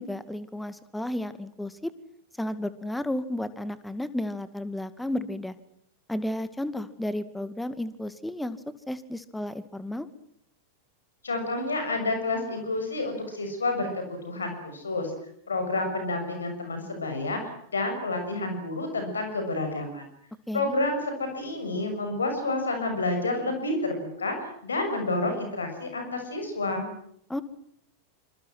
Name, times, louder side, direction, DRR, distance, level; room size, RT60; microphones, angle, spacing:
voice 1, 0.0-1.9 2.4-5.5 6.1-8.6 8.9-10.1 20.5-20.8 27.3-27.4, left 1 dB, 5° left, 13 dB, 2.2 m, -32 dB
voice 2, 11.2-15.1 15.5-20.0 20.5-26.9, left 2 dB, 75° left, 6 dB, 6.5 m, -29 dB
27.0 x 27.0 x 6.2 m, 0.72 s
figure-of-eight pair, 90°, 0 cm